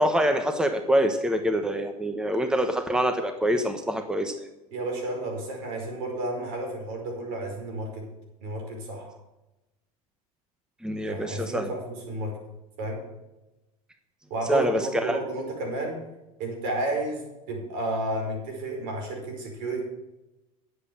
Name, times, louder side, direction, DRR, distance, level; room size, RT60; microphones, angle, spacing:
voice 1, 0.0-4.3 10.8-11.7 14.5-15.2, equal, 5° right, 7 dB, 1.2 m, -25 dB
voice 2, 4.7-8.1 8.4-9.1 11.1-12.4 12.8-13.0 14.3-16.0 16.4-19.8, right 2 dB, 70° right, 2 dB, 4.9 m, -32 dB
10.5 x 8.0 x 7.1 m, 0.98 s
hypercardioid pair, 90°, 19 cm